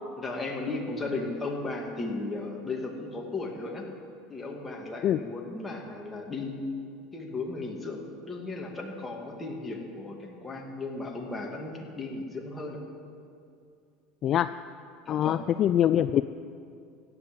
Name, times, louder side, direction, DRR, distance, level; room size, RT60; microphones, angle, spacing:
voice 1, 0.2-3.9 4.3-6.7 7.1-12.8 15.0-15.4, left 3 dB, 10° left, 0 dB, 2.3 m, -35 dB
voice 2, 14.2-14.5 15.1-16.2, left 11 dB, 40° left, 13 dB, 0.3 m, -24 dB
15.0 x 8.6 x 8.5 m, 2.5 s
supercardioid pair, 135°, 0 cm